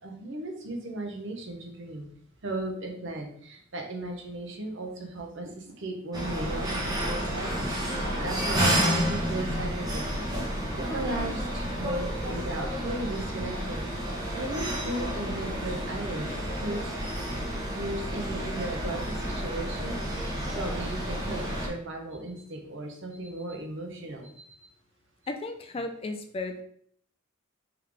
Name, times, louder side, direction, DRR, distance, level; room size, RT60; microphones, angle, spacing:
voice 1, 0.0-2.1 2.4-7.7 8.2-10.1 10.8-13.9 14.3-16.8 17.7-24.4, right 2 dB, 55° right, 2 dB, 0.8 m, -36 dB
sound 1, 6.1-21.7, equal, 20° right, 0.9 m, -30 dB
voice 2, 25.3-26.6, left 2 dB, 25° left, 5 dB, 0.3 m, -34 dB
3.6 x 3.3 x 3.4 m, 0.62 s
head